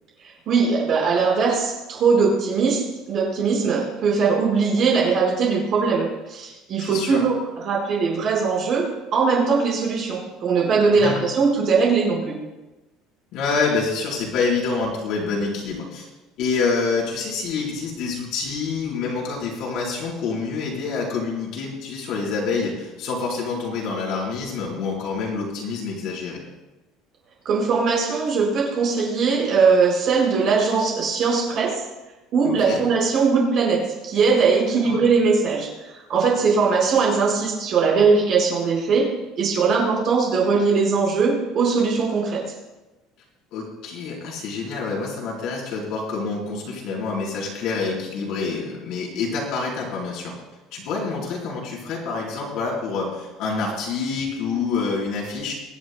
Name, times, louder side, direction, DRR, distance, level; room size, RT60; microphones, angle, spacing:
voice 1, 0.5-2.8 3.1-12.4 27.4-31.8 32.3-39.1 39.4-42.4, right 5 dB, 40° right, -3 dB, 4.9 m, -20 dB
voice 2, 6.8-7.2 10.9-11.2 13.3-16.1 16.4-26.4 32.4-32.8 34.7-35.0 43.5-50.3 50.7-55.5, left 4 dB, 50° left, -3 dB, 4.1 m, -27 dB
24.5 x 10.5 x 2.3 m, 1.0 s
cardioid pair, 175°, 0 cm